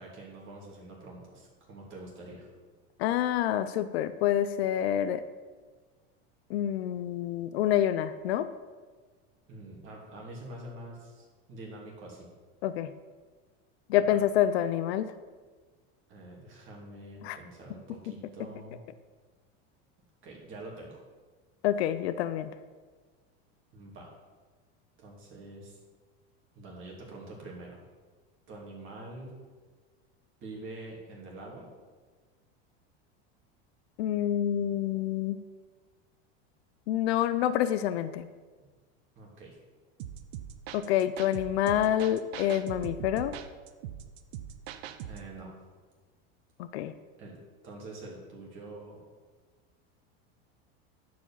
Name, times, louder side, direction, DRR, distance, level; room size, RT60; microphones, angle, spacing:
voice 1, 0.0-2.5 9.5-12.3 14.1-14.2 16.1-18.8 20.2-21.0 23.7-24.1 25.0-25.8 26.5-27.8 28.5-29.4 30.4-31.7 38.6-38.7 39.2-39.6 45.1-45.5 47.2-47.4 47.6-49.0, right 2 dB, 40° right, -2 dB, 2.8 m, -45 dB
voice 2, 3.0-5.2 6.5-8.5 12.6-12.9 13.9-15.1 17.2-17.4 21.6-22.5 34.0-35.4 36.9-38.3 40.7-43.4 46.6-46.9, left 11 dB, 85° left, 12 dB, 0.6 m, -27 dB
sound 1, 40.0-45.3, right 10 dB, 80° right, 0.8 m, -42 dB
10.0 x 4.9 x 7.3 m, 1.4 s
supercardioid pair, 130°, 31 cm